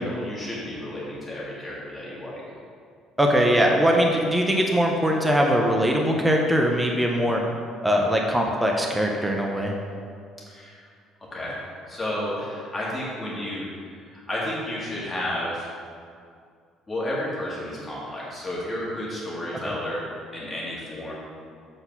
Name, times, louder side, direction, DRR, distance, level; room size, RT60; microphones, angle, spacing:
voice 1, 0.0-2.4 10.5-10.8 11.3-11.6 11.9-13.7 14.1-15.7 16.9-20.0 20.3-21.1, left 1 dB, 15° left, -6 dB, 1.7 m, -31 dB
voice 2, 3.2-7.4 7.8-9.7 19.5-19.6, equal, 5° right, 0 dB, 0.5 m, -21 dB
7.8 x 4.0 x 5.8 m, 2.2 s
cardioid pair, 175°, 0 cm